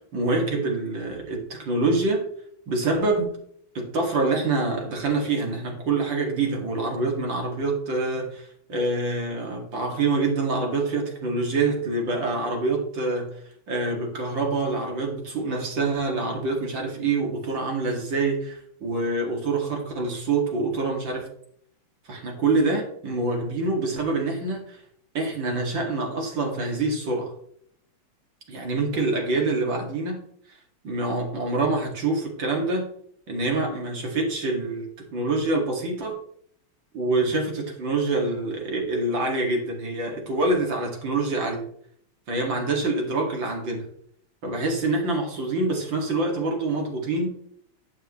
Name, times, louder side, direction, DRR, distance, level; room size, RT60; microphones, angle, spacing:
voice 1, 0.1-2.2 2.7-3.3 3.7-21.3 22.1-24.8 25.1-27.3 28.5-30.2 30.5-30.6 30.8-32.9 33.3-36.2 36.9-41.7 42.3-43.9 44.4-47.3, right 3 dB, 55° right, 0 dB, 2.9 m, -26 dB
11.0 x 8.7 x 3.1 m, 0.65 s
omnidirectional pair, 2.4 m